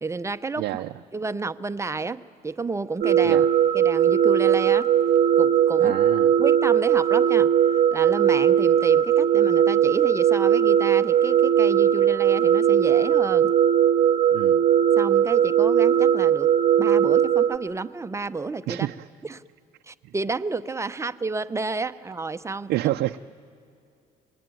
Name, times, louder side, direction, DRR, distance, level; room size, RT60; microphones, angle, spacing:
voice 1, 0.0-0.7 1.1-3.4 3.7-4.9 5.4-6.0 6.4-7.5 7.9-13.5 15.0-18.9 19.2-19.4 19.8-22.7, right 3 dB, 15° right, 11 dB, 0.6 m, -30 dB
voice 2, 0.6-0.9 3.2-3.5 5.8-6.3 14.3-14.6 18.7-19.1 20.0-20.1 22.7-23.2, right 15 dB, 80° right, 6 dB, 0.6 m, -28 dB
sound 1, 3.0-17.6, right 9 dB, 55° right, 0.9 m, -19 dB
27.5 x 20.0 x 9.2 m, 2.6 s
cardioid pair, 110°, 17 cm